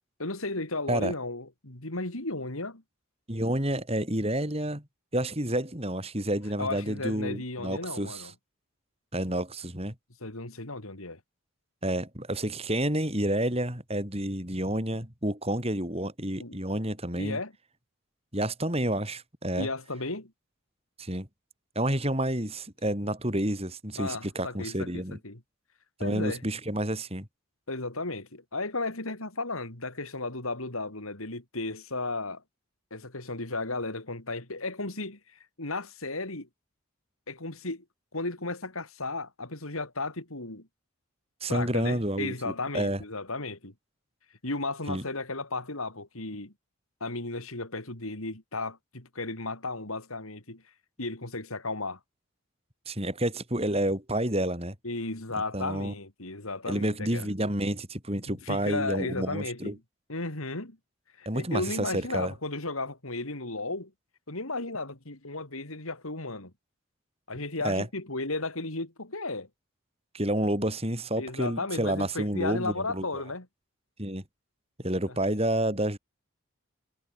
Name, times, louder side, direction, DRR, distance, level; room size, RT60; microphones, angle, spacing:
voice 1, 0.2-2.8 6.6-8.3 10.2-11.2 16.4-16.6 17.2-17.5 19.6-20.3 24.0-25.4 26.0-26.4 27.7-32.4 32.9-36.5 37.3-37.8 38.1-40.7 41.5-43.7 44.4-46.5 47.0-50.6 51.0-52.0 54.8-57.3 58.3-59.8 60.1-60.8 61.2-63.9 64.3-66.5 67.3-69.5 71.2-73.5 75.1-75.2, left 2 dB, 80° left, 4.3 m, -34 dB
voice 2, 3.3-4.8 5.1-8.3 9.1-9.9 11.8-17.4 18.3-19.7 21.0-21.3 21.8-25.2 26.0-27.3 41.4-43.0 44.9-45.0 52.9-54.7 55.5-55.9 56.7-59.8 61.3-62.3 67.6-67.9 70.1-73.1 74.0-74.2 74.8-76.0, right 1 dB, 30° right, 5.7 m, -29 dB
head